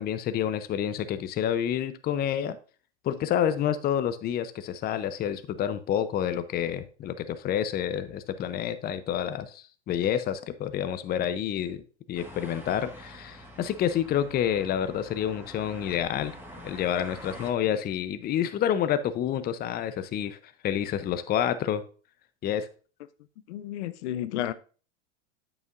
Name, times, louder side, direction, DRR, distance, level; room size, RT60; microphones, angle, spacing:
voice 1, 0.0-2.6 3.0-16.3 16.6-20.4 20.6-21.8 22.4-22.7, left 9 dB, 25° left, 0.6 m, -28 dB
sound 1, 12.2-17.5, equal, 5° right, 1.4 m, -46 dB
voice 2, 23.5-24.5, left 12 dB, 75° left, 0.6 m, -32 dB
8.2 x 7.0 x 2.5 m
hypercardioid pair, 110°, 34 cm